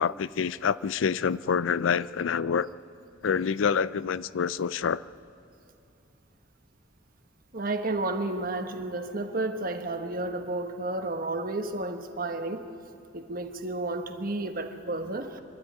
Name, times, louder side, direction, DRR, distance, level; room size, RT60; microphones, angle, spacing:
voice 1, 0.0-2.7 3.2-5.0, left 6 dB, 80° left, 0.4 m, -27 dB
voice 2, 7.5-12.7 13.1-15.4, right 2 dB, 50° right, 1.3 m, -32 dB
25.0 x 12.5 x 9.6 m
head